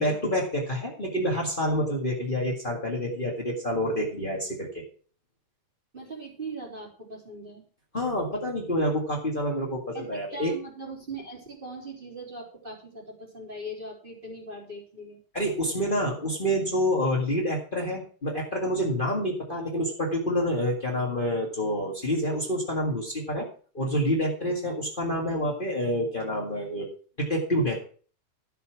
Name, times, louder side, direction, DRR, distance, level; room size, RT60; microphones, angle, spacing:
voice 1, 0.0-4.8 7.9-10.5 15.3-23.5 23.7-26.9 27.2-27.8, equal, 50° left, -1 dB, 0.6 m, -27 dB
voice 2, 5.9-7.6 9.9-15.2, right 2 dB, 15° right, -2 dB, 3.4 m, -40 dB
12.5 x 6.9 x 6.1 m, 0.42 s
omnidirectional pair, 4.6 m